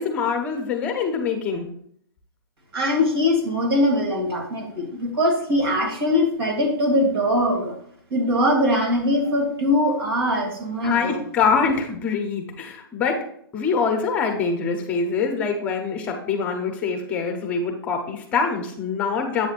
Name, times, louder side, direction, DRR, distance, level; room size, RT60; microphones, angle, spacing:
voice 1, 0.0-1.7 10.8-13.2 13.5-19.5, left 5 dB, 10° left, 3 dB, 0.6 m, -24 dB
voice 2, 2.7-7.7 8.1-11.2, left 1 dB, 90° right, 0 dB, 2.5 m, -22 dB
7.9 x 6.8 x 2.4 m, 0.66 s
hypercardioid pair, 175°, 13 cm